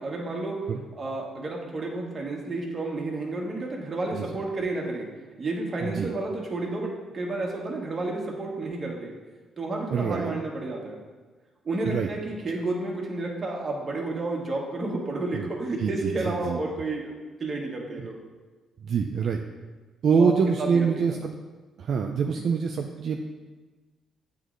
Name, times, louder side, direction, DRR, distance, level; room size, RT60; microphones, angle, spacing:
voice 1, 0.0-0.6 0.9-5.1 5.4-9.1 9.6-11.0 11.6-17.1 17.4-18.1 20.1-20.3 20.6-21.2 22.3-22.4, right 2 dB, 35° right, -1 dB, 1.2 m, -31 dB
voice 2, 9.9-10.4 11.9-12.1 15.3-15.5 15.8-16.6 18.0-18.1 18.8-19.4 20.0-21.4 21.8-23.2, right 6 dB, 60° right, 3 dB, 0.3 m, -25 dB
8.1 x 3.1 x 3.7 m, 1.3 s
cardioid pair, 90°, 0 cm